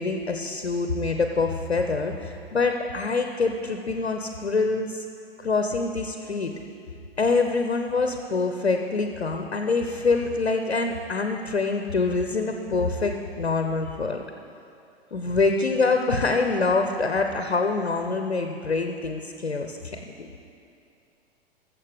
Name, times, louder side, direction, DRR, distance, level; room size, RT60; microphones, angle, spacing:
voice 1, 0.0-5.0 5.4-6.5 7.2-13.1 13.4-14.2 15.1-20.3, left 3 dB, 85° left, 5 dB, 0.8 m, -25 dB
20.5 x 7.3 x 3.5 m, 2.6 s
figure-of-eight pair, 100°, 31 cm